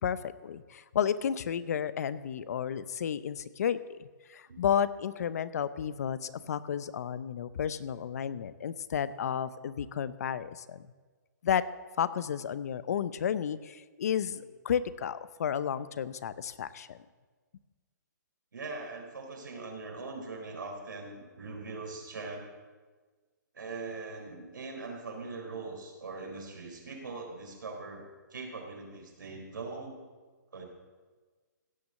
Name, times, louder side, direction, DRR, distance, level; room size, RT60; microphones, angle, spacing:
voice 1, 0.0-10.8 11.4-11.6 12.0-17.0, left 8 dB, 55° left, 15 dB, 0.7 m, -32 dB
voice 2, 18.5-22.5 23.5-30.0 30.5-30.7, right 3 dB, 90° right, 1 dB, 4.0 m, -41 dB
16.5 x 7.2 x 6.6 m, 1.4 s
hypercardioid pair, 160°, 10 cm